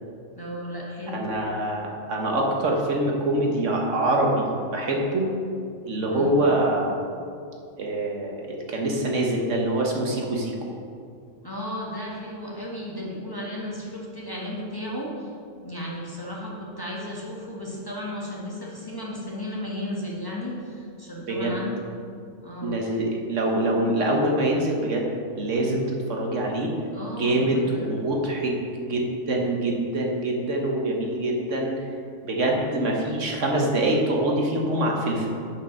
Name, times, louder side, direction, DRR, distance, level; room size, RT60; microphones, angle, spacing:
voice 1, 0.3-1.3 6.1-6.4 11.4-15.3 15.6-21.8 22.4-22.8 26.9-27.9, left 1 dB, 20° left, -5 dB, 1.5 m, -34 dB
voice 2, 1.1-4.5 4.7-5.2 5.8-7.0 7.8-10.6 21.3-21.6 22.6-25.1 25.4-26.7 27.2-28.6 28.9-31.8 32.3-35.3, right 1 dB, 70° right, 0 dB, 1.5 m, -24 dB
9.2 x 5.1 x 6.3 m, 2.4 s
omnidirectional pair, 1.3 m